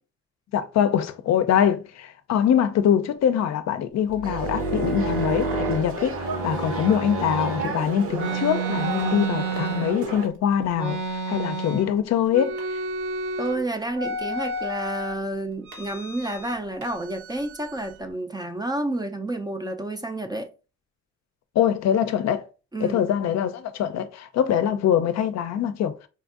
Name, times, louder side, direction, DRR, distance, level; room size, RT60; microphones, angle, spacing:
voice 1, 0.5-11.0 11.3-12.6 21.6-22.4 22.8-25.9, left 9 dB, 60° left, 0.5 m, -23 dB
sound 1, 4.1-7.7 8.1-10.3 10.7-12.0 12.3-13.6 14.0-15.1 15.7-16.6 16.8-18.0, right 3 dB, 80° right, 1.1 m, -30 dB
sound 2, 4.2-10.3, right 4 dB, 50° right, 0.7 m, -33 dB
voice 2, 13.4-20.5 22.7-23.0, right 1 dB, 15° right, 0.4 m, -30 dB
4.3 x 2.5 x 2.4 m
cardioid pair, 90°, 30 cm